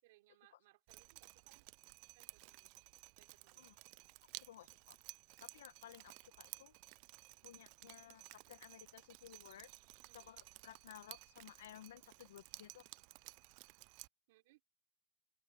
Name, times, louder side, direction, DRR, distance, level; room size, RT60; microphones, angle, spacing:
voice 1, 0.0-1.7 2.1-2.7 3.2-3.7 10.0-10.3 14.3-14.6, right 19 dB, 60° right, 3.9 m, -70 dB
Drip, 0.9-14.1, right 27 dB, 40° right, 0.4 m, -56 dB
voice 2, 4.4-5.0 5.4-6.7 7.4-9.7 10.1-12.8, left 12 dB, 85° left, 1.6 m, -57 dB
supercardioid pair, 160°, 0 cm